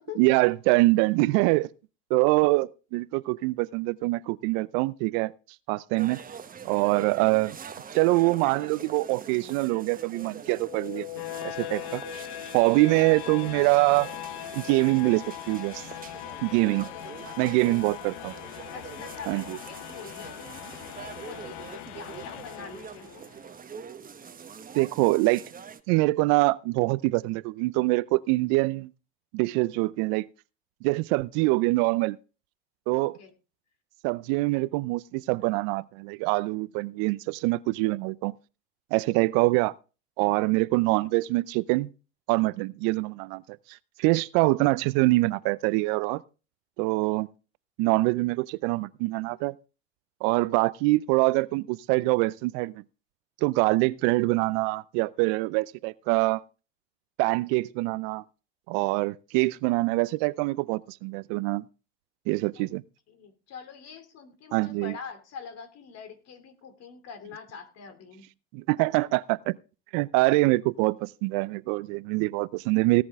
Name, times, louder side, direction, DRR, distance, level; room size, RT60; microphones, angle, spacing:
voice 1, 0.2-1.7 2.1-5.3 5.7-6.2 6.6-7.6 7.9-11.1 11.4-12.2 12.5-14.1 14.5-15.8 16.4-16.9 17.4-18.3 19.3-19.6 24.7-25.5 25.9-28.9 29.3-30.3 30.8-32.2 32.9-33.2 34.0-38.3 38.9-39.7 40.2-41.9 42.3-43.4 44.0-46.2 46.8-47.3 47.8-49.6 50.2-52.7 53.4-56.4 57.2-58.2 58.7-61.6 62.3-62.8 64.5-65.0 68.5-69.5 69.9-73.0, right 22 dB, 65° right, 0.6 m, -24 dB
sound 1, 6.0-25.8, right 7 dB, 25° right, 1.1 m, -44 dB
sound 2, 10.4-23.4, left 14 dB, 65° left, 0.8 m, -40 dB
voice 2, 17.4-17.8 18.7-23.2 33.0-33.3 62.6-62.7 63.1-68.3, left 6 dB, 50° left, 2.7 m, -44 dB
18.0 x 7.8 x 3.6 m
hypercardioid pair, 75°, 33 cm